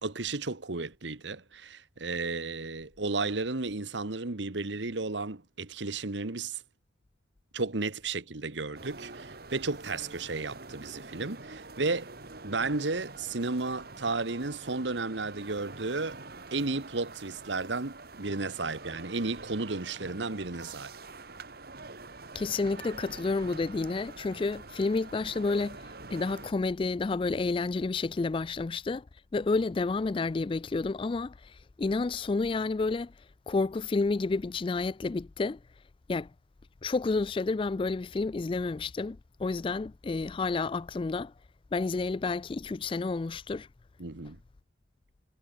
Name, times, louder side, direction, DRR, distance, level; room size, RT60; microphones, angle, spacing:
voice 1, 0.0-6.6 7.5-12.2 12.4-16.2 16.5-21.0 44.0-44.4, right 3 dB, 70° right, 1.4 m, -33 dB
sound 1, 8.7-26.5, right 3 dB, 55° right, 2.2 m, -46 dB
voice 2, 22.3-25.8 26.1-29.0 29.3-33.1 33.5-35.6 36.1-36.3 36.8-41.3 41.7-43.7, left 3 dB, 30° left, 0.3 m, -30 dB
head